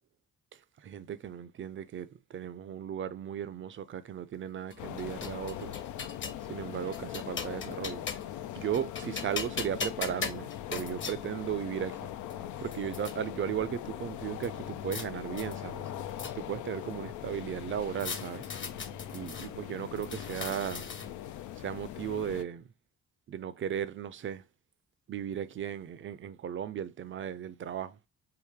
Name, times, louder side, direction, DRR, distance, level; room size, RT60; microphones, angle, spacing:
voice 1, 0.8-5.8 6.5-8.1 8.5-12.1 12.6-15.9 16.4-18.4 19.1-20.9 21.6-22.7 23.3-24.4 25.1-28.0, right 9 dB, 40° right, 0.5 m, -36 dB
sound 1, 4.7-6.4 6.9-8.4 8.7-11.2 11.9-12.0 12.3-13.1 14.4-15.1 15.4-16.6 18.0-19.5 20.0-21.3, left 5 dB, 40° left, 1.0 m, -40 dB
sound 2, 4.8-22.4, left 12 dB, 75° left, 0.5 m, -41 dB
4.8 x 2.6 x 3.4 m
cardioid pair, 90°, 30 cm